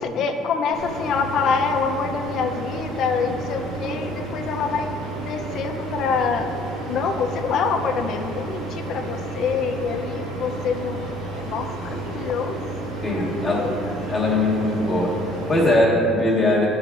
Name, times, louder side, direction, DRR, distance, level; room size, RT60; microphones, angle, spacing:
voice 1, 0.0-4.9 5.2-6.5 6.9-11.1 11.3-12.6 13.2-13.8, left 5 dB, 50° left, 5 dB, 0.5 m, -25 dB
sound 1, 0.7-15.8, right 2 dB, 80° right, 1.8 m, -31 dB
voice 2, 13.0-16.7, left 1 dB, 5° left, -6 dB, 1.4 m, -21 dB
11.5 x 5.7 x 2.5 m, 2.6 s
cardioid pair, 160°, 0 cm